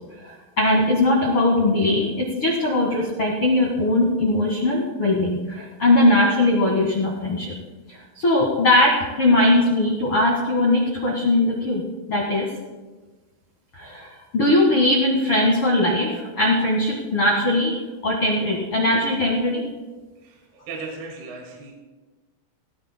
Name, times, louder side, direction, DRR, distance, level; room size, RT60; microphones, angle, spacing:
voice 1, 0.2-7.5 7.9-12.5 13.7-14.1 14.3-17.7 18.0-19.6, left 1 dB, 90° left, -3 dB, 1.2 m, -20 dB
voice 2, 20.2-21.7, right 4 dB, 60° right, 0 dB, 3.6 m, -36 dB
18.0 x 18.0 x 2.2 m, 1.3 s
omnidirectional pair, 5.7 m